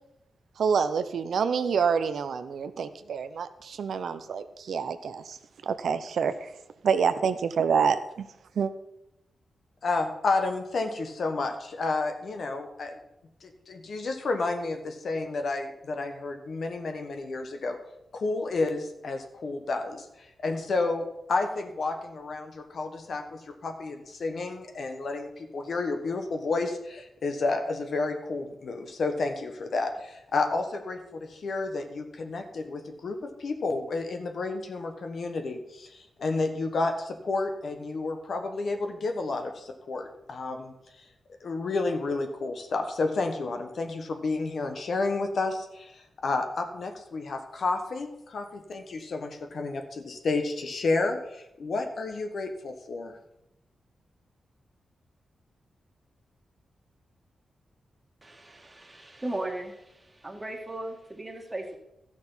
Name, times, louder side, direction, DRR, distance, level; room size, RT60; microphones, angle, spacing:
voice 1, 0.6-5.4 5.6-6.5 6.8-8.3 8.6-8.7, right 6 dB, 75° right, 11 dB, 0.6 m, -27 dB
voice 2, 9.8-13.0 13.4-17.8 18.1-20.0 20.4-40.7 41.4-53.1, left 3 dB, 65° left, 5 dB, 1.4 m, -31 dB
voice 3, 58.2-61.8, right 1 dB, 20° right, 3 dB, 1.7 m, -37 dB
13.0 x 6.3 x 5.6 m, 0.86 s
wide cardioid pair, 105°, 0 cm